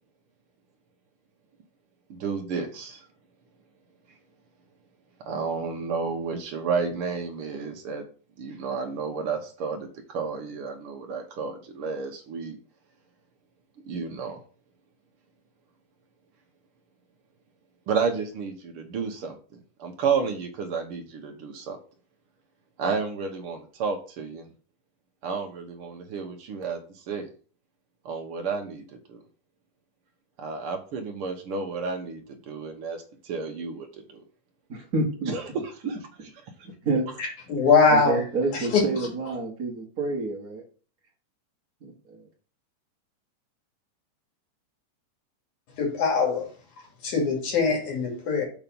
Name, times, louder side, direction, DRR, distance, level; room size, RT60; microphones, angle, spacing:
voice 1, 2.1-3.0 5.2-8.0 8.4-12.6 13.8-14.4 17.9-21.8 22.8-24.5 25.2-27.3 28.0-29.2 30.4-34.2 35.3-35.4, right 5 dB, 70° right, 3 dB, 1.3 m, -31 dB
voice 2, 34.7-35.3 36.8-37.1 37.9-40.6 41.8-42.2, right 2 dB, 40° right, -1 dB, 1.5 m, -28 dB
voice 3, 37.5-38.2 38.7-38.8 45.8-46.5 47.0-48.4, left 4 dB, 70° left, -2 dB, 3.8 m, -21 dB
7.2 x 4.0 x 5.3 m, 0.40 s
omnidirectional pair, 3.6 m